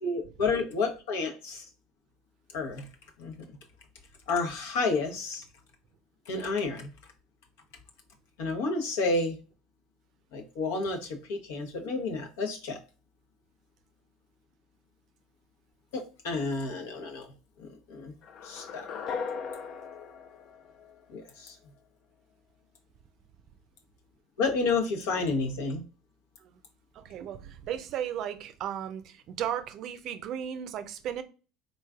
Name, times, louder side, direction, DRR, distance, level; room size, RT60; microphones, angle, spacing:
voice 1, 0.0-1.6 2.5-2.9 3.2-3.4 4.3-5.4 6.3-6.9 8.4-9.4 10.3-12.8 15.9-17.3 17.6-18.1 18.4-18.9 21.1-21.5 24.4-25.8, left 3 dB, 75° left, 0.9 m, -30 dB
sound 1, 18.2-21.3, left 6 dB, 55° left, 0.5 m, -38 dB
voice 2, 26.9-31.2, right 9 dB, 55° right, 0.5 m, -35 dB
3.8 x 3.1 x 2.4 m
hypercardioid pair, 75°, 0 cm